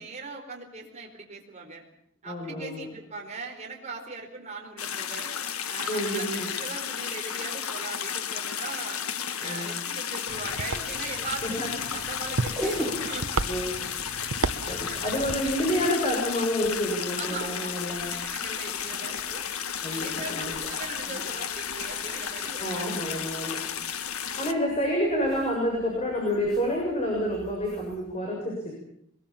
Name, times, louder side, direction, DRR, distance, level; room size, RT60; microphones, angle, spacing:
voice 1, 0.0-1.8 2.2-5.3 5.7-9.0 9.4-11.5 11.9-13.5 14.3-15.4 17.2-19.5 19.9-22.9 23.4-23.5, right 4 dB, 30° right, 1 dB, 4.6 m, -40 dB
voice 2, 2.2-2.9 5.9-6.5 9.4-9.7 11.4-11.7 13.5-13.8 14.7-18.1 19.8-20.5 22.6-23.6 24.4-28.7, equal, 30° left, -1 dB, 6.9 m, -28 dB
sound 1, 4.8-24.5, left 8 dB, 90° left, 1.7 m, -33 dB
sound 2, 10.3-15.9, right 3 dB, 75° right, 0.9 m, -34 dB
sound 3, 12.1-28.2, equal, ahead, 6.3 m, -43 dB
24.0 x 22.5 x 7.3 m, 0.71 s
head